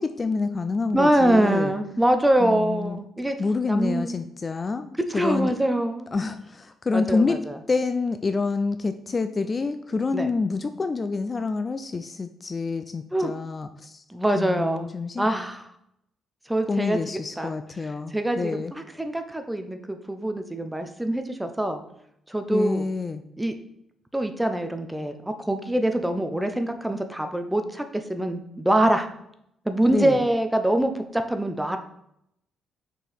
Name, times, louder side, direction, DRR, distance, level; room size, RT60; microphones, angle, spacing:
voice 1, 0.0-1.7 2.4-3.0 3.4-5.5 6.1-7.4 7.7-14.0 14.3-15.3 16.7-18.7 22.5-23.2 29.9-30.2, left 4 dB, 30° left, 10 dB, 0.3 m, -27 dB
voice 2, 0.9-3.4 3.7-4.1 5.1-6.1 6.9-7.6 10.1-10.3 13.1-13.3 14.1-14.9 15.2-15.7 16.5-17.0 17.4-17.5 18.1-21.8 22.3-22.9 23.4-23.5 24.1-29.1 29.7-31.8, right 1 dB, 10° right, 7 dB, 0.7 m, -24 dB
6.2 x 4.5 x 3.5 m, 0.77 s
cardioid pair, 90°, 0 cm